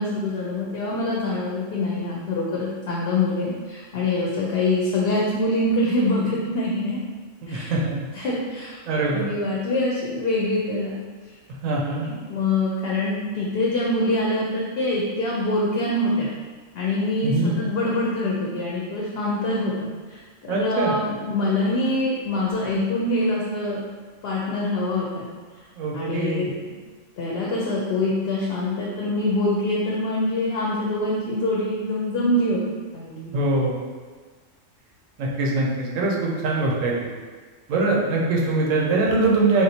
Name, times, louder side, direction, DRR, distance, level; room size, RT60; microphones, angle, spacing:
voice 1, 0.0-7.0 7.5-7.7 8.1-8.8 9.1-11.0 11.9-16.3 16.8-23.8 24.2-25.2 25.9-26.5 27.2-32.6 32.9-33.3, left 2 dB, 65° left, -4 dB, 0.7 m, -24 dB
voice 2, 7.4-8.0 8.9-9.2 11.6-12.1 17.2-17.5 20.5-20.9 25.7-26.5 33.3-33.8 35.2-37.1 37.7-39.6, right 2 dB, 90° right, -2 dB, 1.1 m, -23 dB
3.5 x 2.6 x 2.7 m, 1.5 s
omnidirectional pair, 1.3 m